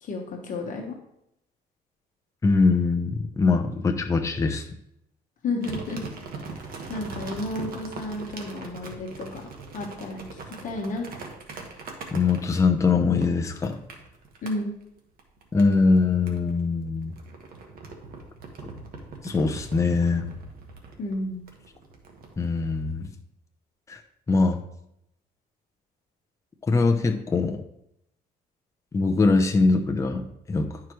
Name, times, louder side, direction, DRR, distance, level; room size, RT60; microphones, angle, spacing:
voice 1, 0.0-1.0 5.4-6.0 6.9-9.5 9.7-11.1 14.4-14.7 21.0-21.5, left 2 dB, 50° left, 1 dB, 1.1 m, -32 dB
voice 2, 2.4-4.7 12.1-13.8 15.5-17.1 19.2-20.3 22.4-23.1 23.9-24.0 24.3-24.6 26.7-27.6 28.9-30.9, left 4 dB, 20° left, 4 dB, 0.7 m, -22 dB
sound 1, 5.6-12.8 13.2-14.5 15.2-16.0 16.3-22.9, right 4 dB, 60° right, 1.5 m, -41 dB
11.0 x 4.8 x 3.1 m, 0.79 s
cardioid pair, 110°, 17 cm